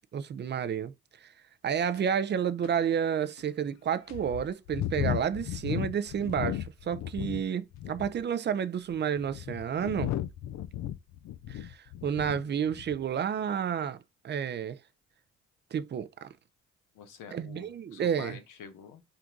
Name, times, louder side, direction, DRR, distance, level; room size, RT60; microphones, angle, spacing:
voice 1, 0.1-0.9 1.2-1.3 1.6-10.1 11.5-14.0 14.2-14.8 15.7-16.3 17.3-18.4, right 8 dB, 35° right, 0.4 m, -30 dB
sound 1, 1.9-2.0 2.6-2.7 3.4-3.5 4.1-7.4 7.7-8.2 8.9-12.4 12.7-13.0, left 12 dB, 65° left, 0.5 m, -35 dB
voice 2, 16.9-19.0, left 6 dB, 85° left, 1.0 m, -47 dB
3.8 x 2.5 x 4.5 m
cardioid pair, 90°, 30 cm